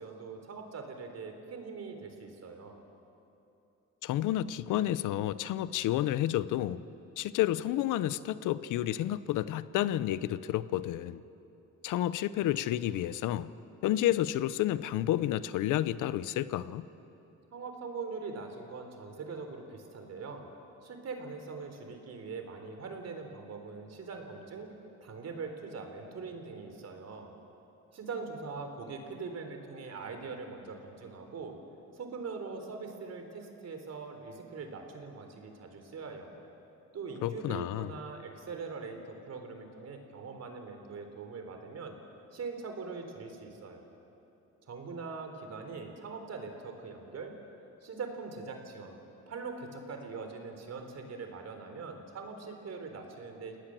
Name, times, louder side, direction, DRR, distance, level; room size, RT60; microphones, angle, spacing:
voice 1, 0.0-2.8 17.5-20.5 20.8-24.7 25.0-27.3 27.9-31.6 31.9-36.3 36.9-42.0 42.3-43.9 44.7-47.3 47.8-49.0 49.3-53.6, right 4 dB, 55° right, 5 dB, 3.9 m, -42 dB
voice 2, 4.0-6.8 7.2-11.2 11.8-13.5 13.8-16.9 37.2-37.9, left 13 dB, 90° left, 16 dB, 0.7 m, -30 dB
30.0 x 18.5 x 7.6 m, 2.9 s
cardioid pair, 90°, 30 cm